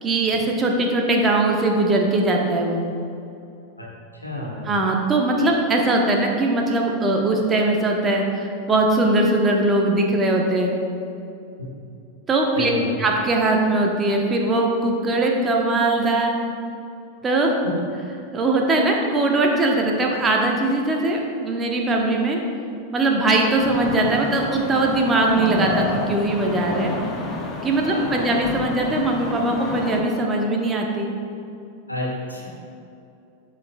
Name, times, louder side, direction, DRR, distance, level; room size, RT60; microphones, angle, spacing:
voice 1, 0.0-2.8 4.6-10.7 12.3-12.7 13.0-16.4 17.2-17.5 18.3-22.4 22.9-26.9 27.6-31.1, right 2 dB, 20° right, 1 dB, 0.9 m, -20 dB
voice 2, 4.2-4.7 12.5-12.9 27.8-28.2 31.9-32.5, left 1 dB, 85° left, -3 dB, 1.5 m, -30 dB
sound 1, 23.6-30.0, left 2 dB, 25° left, 0.9 m, -29 dB
12.0 x 4.9 x 2.3 m, 2.6 s
figure-of-eight pair, 90°, 0 cm